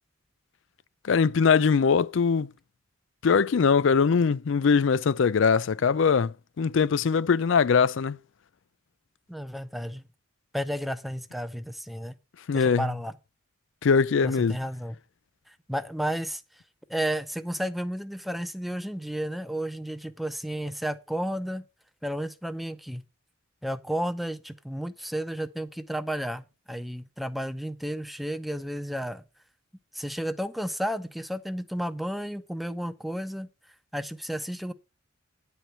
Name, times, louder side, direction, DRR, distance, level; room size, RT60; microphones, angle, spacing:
voice 1, 1.1-2.5 3.2-8.2 12.5-12.9 13.8-14.6, left 5 dB, 65° left, 0.4 m, -22 dB
voice 2, 9.3-10.0 10.5-12.2 12.5-13.1 14.2-15.0 15.5-16.4 16.9-21.6 22.0-23.0 23.6-29.2 29.9-33.5 33.9-34.7, equal, ahead, 0.6 m, -32 dB
10.0 x 4.6 x 6.7 m
head